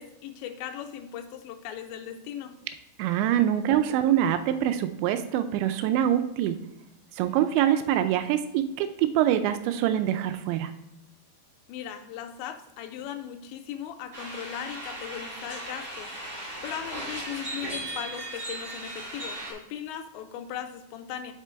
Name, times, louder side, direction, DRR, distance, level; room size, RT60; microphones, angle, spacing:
voice 1, 0.0-2.5 11.7-16.4 16.6-21.3, left 9 dB, 90° left, 8 dB, 2.9 m, -38 dB
voice 2, 3.0-6.6 7.2-10.7, right 11 dB, 85° right, 10 dB, 2.8 m, -24 dB
sound 1, 14.1-19.5, right 1 dB, 25° right, 2.9 m, -37 dB
7.4 x 6.7 x 3.4 m, 0.92 s
omnidirectional pair, 5.1 m